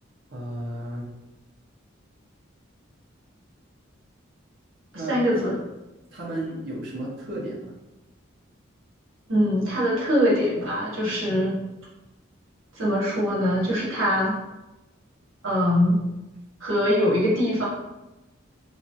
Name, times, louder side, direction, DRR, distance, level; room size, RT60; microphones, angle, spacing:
voice 1, 0.3-1.1 4.9-5.1 5.4-5.5 6.1-7.7, right 1 dB, 55° right, -7 dB, 0.9 m, -33 dB
voice 2, 5.1-5.6 9.3-11.6 12.7-14.4 15.4-16.0 16.6-17.7, equal, 80° right, -5 dB, 1.2 m, -22 dB
3.1 x 3.1 x 2.7 m, 1.0 s
head